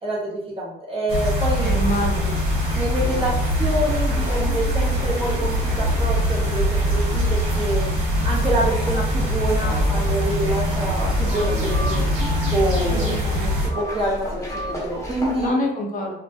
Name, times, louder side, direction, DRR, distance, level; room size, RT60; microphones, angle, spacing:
voice 1, 0.0-1.7 2.7-7.9 8.2-12.1 12.5-13.1 13.7-15.5, right 1 dB, 30° right, -4 dB, 0.7 m, -26 dB
sound 1, 1.1-13.7, equal, 90° right, 1.1 m, -22 dB
voice 2, 1.6-2.5 12.9-13.6 15.4-16.2, left 1 dB, 40° left, 0 dB, 0.6 m, -27 dB
sound 2, 1.8-15.5, left 1 dB, 15° left, 0.8 m, -34 dB
2.2 x 2.0 x 2.7 m, 0.81 s
cardioid pair, 90°, 20 cm